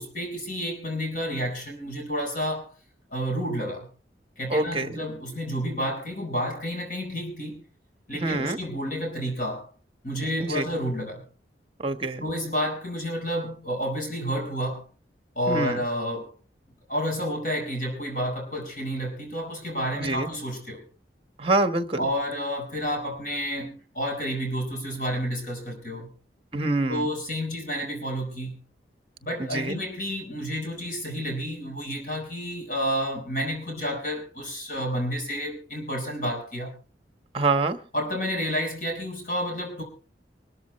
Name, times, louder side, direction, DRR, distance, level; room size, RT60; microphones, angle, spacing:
voice 1, 0.0-2.7 3.1-3.9 4.4-7.6 8.1-9.7 10.0-11.3 12.2-14.8 15.3-16.3 16.9-20.8 22.0-26.1 26.9-28.6 29.2-36.7 37.9-39.8, equal, 50° left, 2 dB, 4.7 m, -30 dB
voice 2, 4.5-5.0 8.1-8.6 10.4-10.7 11.8-12.2 15.5-15.8 19.9-20.3 21.4-22.1 26.5-27.1 29.4-29.8 37.3-37.8, right 2 dB, 30° right, 9 dB, 1.4 m, -26 dB
24.0 x 13.5 x 3.2 m, 0.35 s
head